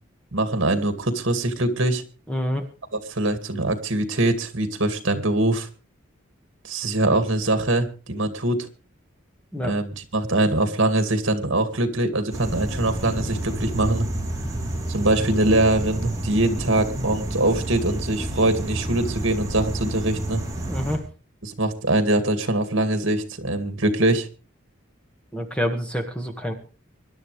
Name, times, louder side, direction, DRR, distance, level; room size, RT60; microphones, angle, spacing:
voice 1, 0.3-2.0 2.9-5.7 6.6-8.7 9.6-14.1 14.9-20.4 21.4-24.3, right 2 dB, 65° right, 8 dB, 2.2 m, -23 dB
voice 2, 2.3-2.6 9.5-9.8 20.7-21.0 25.3-26.5, equal, 5° left, 3 dB, 1.6 m, -27 dB
sound 1, 12.3-21.0, right 1 dB, 15° right, 3.5 m, -29 dB
25.0 x 11.5 x 3.3 m, 0.34 s
head